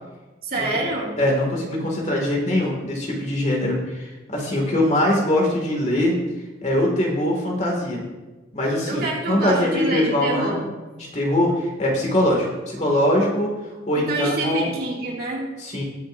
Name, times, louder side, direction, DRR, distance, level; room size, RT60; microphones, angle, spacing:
voice 1, 0.4-1.1 8.9-10.6 14.0-15.5, right 2 dB, 55° right, -3 dB, 2.7 m, -26 dB
voice 2, 1.2-6.1 6.6-8.0 8.5-10.6 11.0-13.5 13.9-14.7 15.6-15.8, left 1 dB, 40° left, -1 dB, 2.4 m, -22 dB
20.5 x 7.4 x 2.7 m, 1.2 s
head